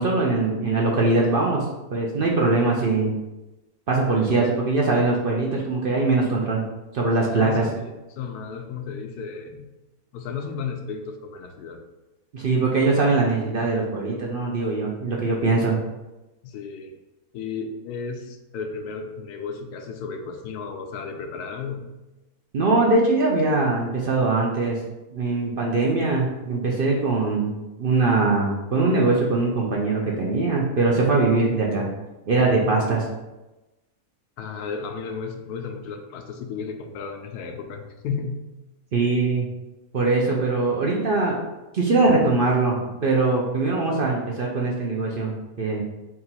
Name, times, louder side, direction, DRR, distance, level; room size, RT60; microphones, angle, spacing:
voice 1, 0.0-3.2 3.9-6.6 6.9-7.6 12.3-15.8 22.5-24.8 25.1-31.9 32.3-33.0 38.9-39.5 39.9-41.4 41.7-45.3 45.6-45.8, right 3 dB, 55° right, -2 dB, 0.6 m, -22 dB
voice 2, 7.3-9.7 10.1-11.8 16.4-16.9 17.3-21.9 34.4-38.5, left 5 dB, 85° left, 5 dB, 1.1 m, -33 dB
3.8 x 2.9 x 4.2 m, 1.0 s
omnidirectional pair, 1.6 m